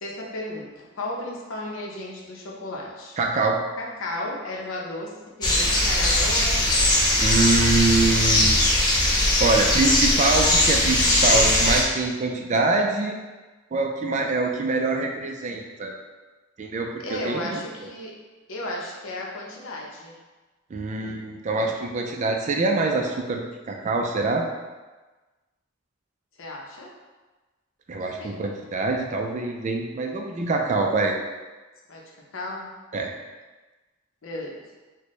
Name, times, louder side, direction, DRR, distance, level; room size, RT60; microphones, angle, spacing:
voice 1, 0.0-3.2 3.8-5.1 5.4-7.0 17.0-18.1 18.5-20.1 26.4-26.9 27.9-28.4 31.9-32.0 32.3-32.7 34.2-34.5, left 1 dB, 75° left, -2 dB, 0.7 m, -34 dB
voice 2, 3.2-3.6 7.2-8.6 9.1-13.2 13.7-15.9 16.6-17.9 20.7-24.4 27.9-31.2 32.9-33.1, right 3 dB, 35° right, 2 dB, 0.4 m, -24 dB
sound 1, 5.4-11.8, left 1 dB, 20° left, 0.5 m, -20 dB
4.2 x 2.2 x 3.0 m, 1.2 s
head